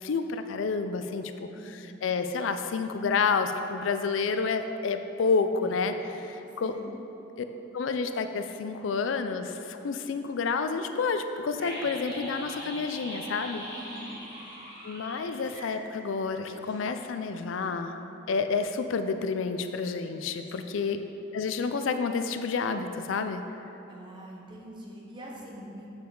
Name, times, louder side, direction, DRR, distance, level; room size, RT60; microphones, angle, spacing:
voice 1, 0.0-1.5 2.0-6.7 7.7-13.6 14.8-18.0 18.3-21.0 21.3-23.4, left 4 dB, 80° left, 8 dB, 0.4 m, -29 dB
voice 2, 1.5-2.0 5.6-5.8 6.1-6.4 6.6-6.9 13.7-14.2 20.5-20.8 23.9-25.9, equal, 25° right, -3 dB, 1.0 m, -45 dB
sound 1, 11.6-16.4 16.6-16.7, equal, 55° right, 1.7 m, -41 dB
7.1 x 6.8 x 3.8 m, 2.9 s
head